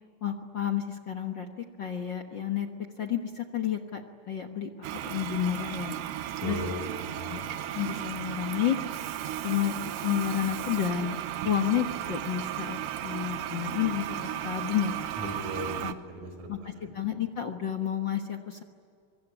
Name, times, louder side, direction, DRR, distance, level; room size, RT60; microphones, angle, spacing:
voice 1, 0.2-2.7 3.0-4.0 4.3-4.7 5.0-6.0 6.4-6.6 7.2-7.4 7.7-8.8 9.4-11.2 11.4-14.9 15.8-15.9 16.5-18.6, left 10 dB, 55° left, 4 dB, 1.4 m, -30 dB
Toilet flush, 4.8-15.9, right 11 dB, 85° right, 2.6 m, -35 dB
voice 2, 6.4-7.4 15.2-16.9, equal, 60° right, 5 dB, 5.9 m, -37 dB
25.0 x 23.5 x 9.8 m, 2.3 s
omnidirectional pair, 3.8 m